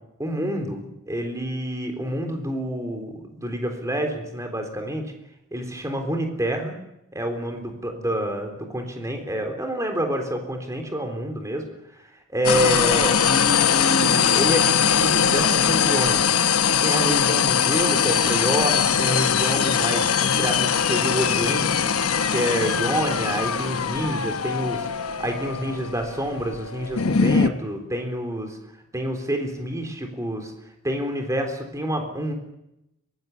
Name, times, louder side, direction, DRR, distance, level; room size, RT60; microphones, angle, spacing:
voice 1, 0.2-5.1 5.5-6.8 7.1-11.7 12.3-16.4 16.8-21.9 22.3-24.9 25.2-28.6 28.9-30.5 30.8-32.3, equal, 15° right, 4 dB, 3.7 m, -28 dB
sound 1, 12.4-27.5, left 7 dB, 80° left, 1.1 m, -21 dB
23.5 x 19.5 x 8.4 m, 0.87 s
head